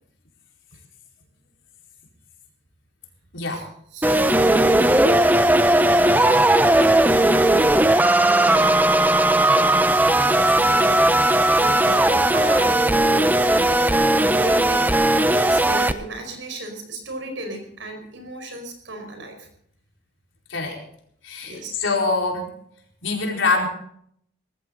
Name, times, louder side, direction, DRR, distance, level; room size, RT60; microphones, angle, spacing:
voice 1, 3.3-3.6 10.2-10.5 20.5-20.8 21.2-22.5 23.0-23.7, left 3 dB, 90° left, 0 dB, 4.5 m, -24 dB
voice 2, 3.9-5.3 5.8-6.8 7.1-7.2 8.1-8.9 10.4-11.1 11.5-19.5 21.4-21.8, right 1 dB, 80° right, 5 dB, 5.0 m, -34 dB
sound 1, 4.0-15.9, right 1 dB, 10° right, 0.6 m, -17 dB
19.5 x 15.0 x 3.9 m, 0.67 s
head